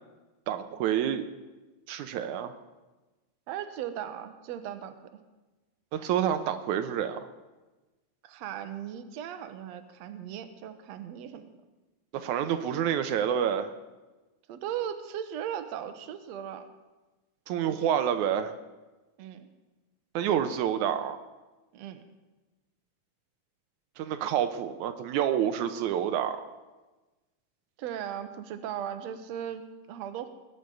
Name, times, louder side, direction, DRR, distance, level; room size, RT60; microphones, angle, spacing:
voice 1, 0.5-1.3 1.9-2.5 5.9-7.2 12.1-13.7 17.5-18.6 20.1-21.2 24.0-26.4, right 9 dB, 85° right, 9 dB, 2.2 m, -28 dB
voice 2, 3.5-5.1 8.2-11.5 14.5-16.7 19.2-19.5 21.7-22.0 27.8-30.3, right 10 dB, 70° right, 8 dB, 2.1 m, -37 dB
20.0 x 6.9 x 9.2 m, 1.2 s
omnidirectional pair, 3.4 m